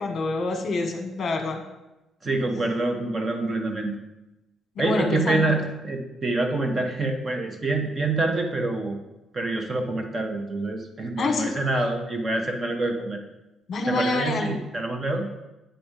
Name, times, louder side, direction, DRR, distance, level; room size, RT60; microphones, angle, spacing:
voice 1, 0.0-1.6 4.7-5.4 11.2-11.5 13.7-14.6, left 3 dB, 35° left, 4 dB, 1.3 m, -26 dB
voice 2, 2.2-4.0 4.8-9.0 9.3-13.2 13.9-15.3, right 2 dB, 25° right, 4 dB, 0.9 m, -26 dB
9.1 x 4.3 x 5.1 m, 0.98 s
cardioid pair, 155°, 0 cm